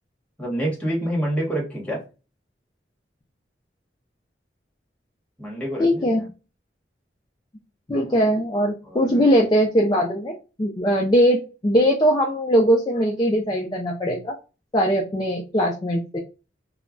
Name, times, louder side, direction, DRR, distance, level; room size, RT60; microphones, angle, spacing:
voice 1, 0.4-2.0 5.4-6.3 8.8-9.4, right 1 dB, 5° left, -3 dB, 1.0 m, -28 dB
voice 2, 5.8-6.2 7.9-14.3 14.7-16.2, equal, 25° left, 0 dB, 0.4 m, -20 dB
2.2 x 2.1 x 3.7 m, 0.32 s
head